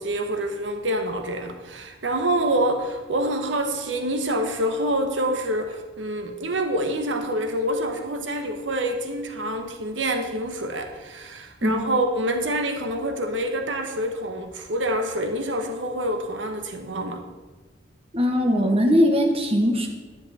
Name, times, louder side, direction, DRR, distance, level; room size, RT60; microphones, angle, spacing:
voice 1, 0.0-17.2, right 1 dB, 90° right, 6 dB, 1.1 m, -26 dB
voice 2, 18.1-19.9, equal, 35° right, 3 dB, 1.3 m, -20 dB
10.5 x 10.0 x 4.2 m, 1.3 s
head